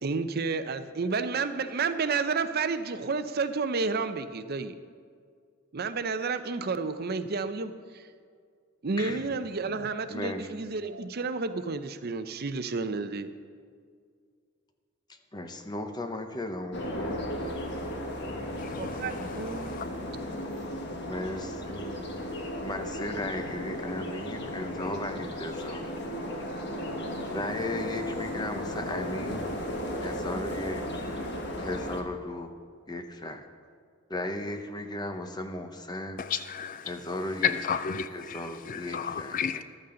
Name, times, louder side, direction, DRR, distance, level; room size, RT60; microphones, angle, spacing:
voice 1, 0.0-4.7 5.7-8.1 8.8-13.3 18.8-19.8, right 4 dB, 50° right, 0.6 m, -31 dB
voice 2, 10.1-10.5 15.1-17.3 21.0-22.1 22.6-25.8 27.3-29.5 30.0-31.1 31.6-32.5 32.9-33.4 34.1-36.2 36.8-37.6 38.1-39.6, left 1 dB, 20° left, 0.8 m, -36 dB
sound 1, 16.7-32.0, equal, 55° left, 1.4 m, -35 dB
voice 3, 18.6-19.9 36.2-36.9 37.4-39.6, left 7 dB, 40° left, 0.3 m, -33 dB
14.0 x 12.5 x 3.9 m
head